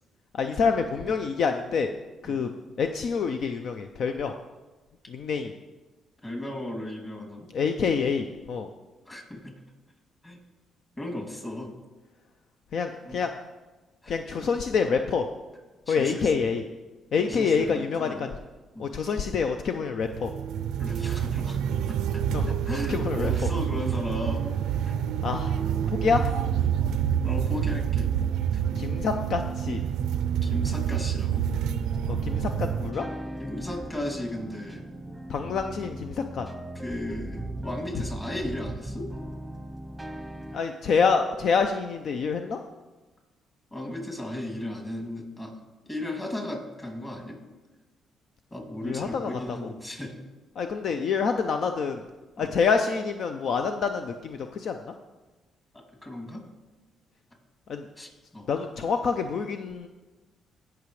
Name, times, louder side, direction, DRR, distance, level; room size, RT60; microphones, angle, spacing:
voice 1, 0.3-1.9 2.2-2.5 2.8-4.3 5.1-5.5 7.5-8.7 12.7-13.3 14.1-15.2 15.9-16.6 17.1-18.4 18.8-20.3 22.3-22.6 22.9-23.5 25.2-25.6 25.9-26.2 28.8-29.8 32.1-33.1 35.3-36.5 37.9-38.0 40.5-42.6 48.8-49.7 50.6-52.0 52.4-54.9 57.7-57.9 58.5-59.9, left 5 dB, 65° left, 6 dB, 0.5 m, -27 dB
voice 2, 6.2-7.5 9.1-9.5 10.2-10.4 11.0-11.7 13.0-13.2 14.0-14.2 15.9-16.3 17.3-18.3 18.7-18.9 20.8-21.6 21.9-22.2 22.6-24.5 24.8-24.9 27.2-28.1 30.4-31.4 33.4-34.8 36.7-39.1 43.7-45.5 45.9-47.4 48.5-50.1 52.4-52.5 56.0-56.4 58.0-58.5, left 1 dB, 20° left, 1 dB, 2.7 m, -35 dB
sound 1, 20.0-32.9, right 9 dB, 85° right, 0.4 m, -27 dB
sound 2, 31.9-40.6, right 1 dB, 5° right, 0.9 m, -38 dB
17.0 x 6.0 x 3.2 m, 1.2 s
cardioid pair, 90°, 0 cm